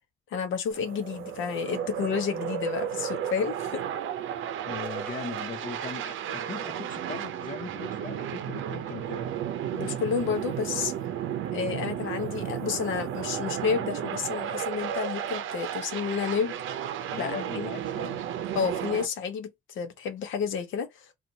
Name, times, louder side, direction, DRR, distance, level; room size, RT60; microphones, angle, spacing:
voice 1, 0.3-3.8 9.7-10.9 11.5-16.6 17.1-17.7 18.5-21.1, left 6 dB, 80° left, 0.8 m, -30 dB
sound 1, 0.7-19.1, right 9 dB, 80° right, 0.6 m, -33 dB
voice 2, 4.6-9.3 17.1-18.2, left 5 dB, 40° left, 0.7 m, -39 dB
2.7 x 2.4 x 3.9 m
cardioid pair, 90°, 20 cm